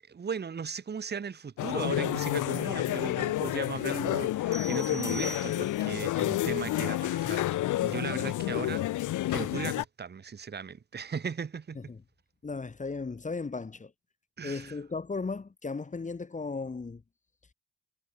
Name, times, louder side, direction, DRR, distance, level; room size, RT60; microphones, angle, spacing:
voice 1, 0.1-11.9 14.4-14.7, right 6 dB, 35° right, 1.6 m, -37 dB
sound 1, 1.6-9.8, left 15 dB, 85° left, 2.1 m, -30 dB
sound 2, 4.5-6.0, right 2 dB, 10° right, 1.3 m, -41 dB
voice 2, 12.4-13.9 14.4-17.0, left 4 dB, 25° left, 1.9 m, -36 dB
cardioid pair, 90°, 30 cm